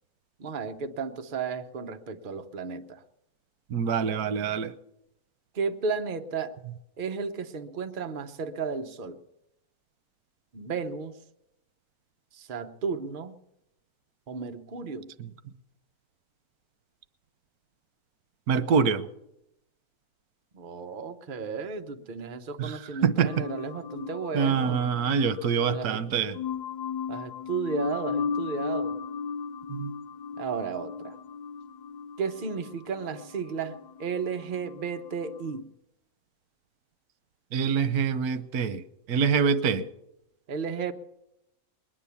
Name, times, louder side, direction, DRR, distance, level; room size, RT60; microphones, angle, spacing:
voice 1, 0.4-3.0 5.5-6.6 7.0-9.2 10.5-11.2 12.3-13.4 14.3-15.1 20.5-24.9 25.7-26.0 27.1-29.0 30.4-31.2 32.2-35.7 39.6-39.8 40.5-40.9, right 5 dB, 40° right, 0.9 m, -33 dB
voice 2, 3.7-4.7 15.2-15.3 18.5-19.1 22.6-23.4 24.3-26.4 29.7-29.9 37.5-38.8 39.1-39.8, right 6 dB, 90° right, 1.3 m, -25 dB
sound 1, 23.2-35.5, left 5 dB, 50° left, 0.5 m, -36 dB
21.0 x 9.9 x 7.0 m
omnidirectional pair, 1.5 m